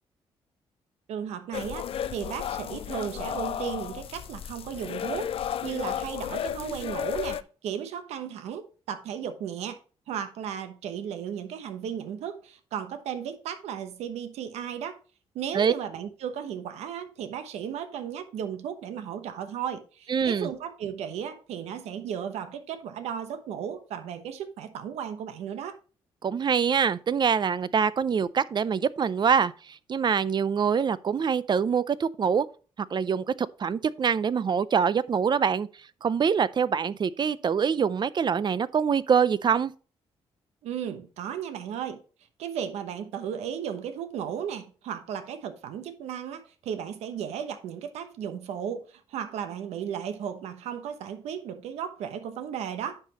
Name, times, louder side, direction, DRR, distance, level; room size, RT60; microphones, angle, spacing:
voice 1, 1.1-9.8 10.1-15.0 15.3-25.8 40.6-42.0 42.4-53.0, right 8 dB, 85° right, 1.0 m, -35 dB
sound 1, 1.5-7.4, left 9 dB, 60° left, 0.4 m, -33 dB
voice 2, 20.1-20.5 26.2-32.5 32.9-33.3 33.6-35.7 36.0-39.7, right 6 dB, 45° right, 0.5 m, -24 dB
9.8 x 5.7 x 2.9 m
cardioid pair, 70°, 11 cm